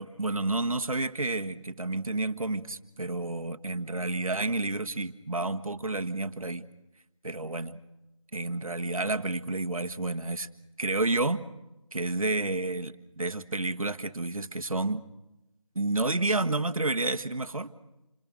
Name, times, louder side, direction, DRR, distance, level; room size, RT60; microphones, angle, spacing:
voice 1, 0.0-6.7 7.2-7.8 8.3-10.5 10.8-11.5 11.9-15.0 15.7-17.7, right 2 dB, 85° right, 7 dB, 1.5 m, -30 dB
28.0 x 22.5 x 6.2 m, 0.93 s
figure-of-eight pair, 170°, 17 cm